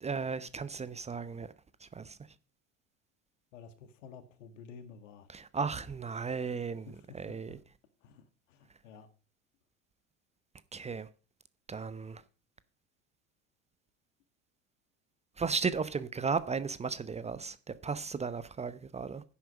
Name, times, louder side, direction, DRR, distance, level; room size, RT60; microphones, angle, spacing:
voice 1, 0.0-1.5 1.8-2.2 5.3-6.9 7.1-7.6 10.7-11.1 11.7-12.2 15.4-19.2, right 5 dB, 15° right, 0.7 m, -35 dB
voice 2, 3.5-5.3 6.9-7.6 8.0-9.1, left 6 dB, 70° left, 1.8 m, -52 dB
10.5 x 9.2 x 5.2 m
figure-of-eight pair, 70°, 39 cm